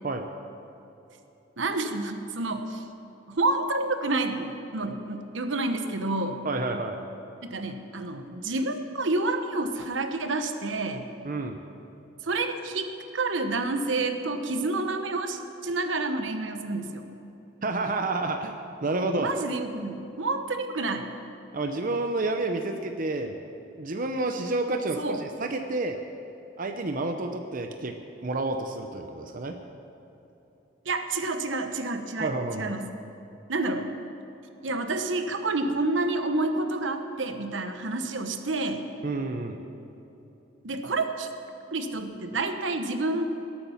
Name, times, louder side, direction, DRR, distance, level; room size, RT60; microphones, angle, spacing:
voice 1, 1.6-2.8 3.3-6.4 7.5-11.1 12.2-12.9 13.1-17.1 19.2-21.1 25.0-25.2 30.8-32.9 33.5-33.9 34.6-38.8 40.6-41.3 41.7-43.2, right 2 dB, 75° right, 7 dB, 1.0 m, -29 dB
voice 2, 6.4-7.0 11.2-11.6 17.6-19.3 21.5-23.4 23.8-26.0 26.6-28.0 28.2-29.6 32.2-32.8 39.0-39.6, right 2 dB, 45° right, 5 dB, 0.7 m, -29 dB
18.0 x 8.6 x 7.2 m, 3.0 s
head